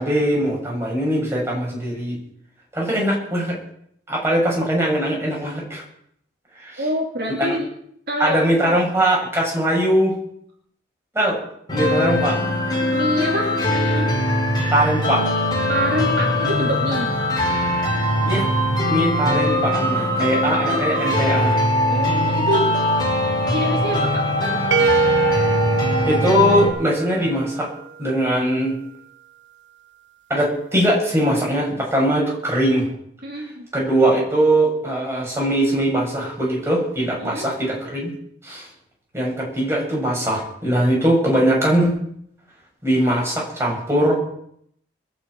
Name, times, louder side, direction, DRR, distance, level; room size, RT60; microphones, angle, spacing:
voice 1, 0.0-2.2 2.7-3.6 4.1-5.8 6.6-6.8 7.4-7.6 8.2-10.1 11.1-11.4 11.7-12.4 14.7-15.3 18.2-18.4 18.9-21.6 26.1-27.7 28.0-28.7 30.3-32.9 33.7-38.1 38.4-38.7 39.1-41.9 42.8-44.2, right 1 dB, 15° right, -3 dB, 7.0 m, -21 dB
voice 2, 6.8-7.7 8.1-8.8 12.9-14.1 15.7-17.1 21.9-22.7 23.5-24.8 33.2-33.7 37.2-37.5, equal, 60° right, 0 dB, 2.8 m, -26 dB
sound 1, 11.7-26.7, left 1 dB, 25° left, 4.6 m, -21 dB
sound 2, 24.7-27.6, right 4 dB, 75° right, 0.6 m, -22 dB
22.0 x 7.4 x 9.0 m, 0.70 s
head